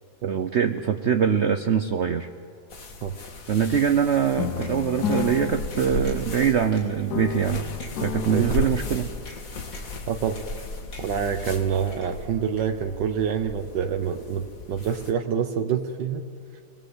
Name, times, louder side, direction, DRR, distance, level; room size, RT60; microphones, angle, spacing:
voice 1, 0.2-2.3 3.5-7.6 8.0-9.1, right 8 dB, 55° right, 8 dB, 0.8 m, -23 dB
sound 1, 2.7-15.1, left 3 dB, 50° left, 2.0 m, -36 dB
sound 2, 4.4-6.7 7.1-9.4, left 8 dB, 65° left, 1.3 m, -32 dB
sound 3, 4.6-4.7 5.1-5.3 5.7-6.3 6.7-6.8 7.3-7.4 7.8-7.9 8.5-8.6 9.3-9.4 9.7-10.0 10.4-10.7 10.9-11.5 11.9-12.3 12.6-12.7, left 2 dB, 90° left, 5.1 m, -46 dB
voice 2, 10.1-10.4 11.0-16.2, right 7 dB, 80° right, 7 dB, 1.5 m, -27 dB
25.0 x 19.0 x 8.0 m, 2.4 s
omnidirectional pair, 1.9 m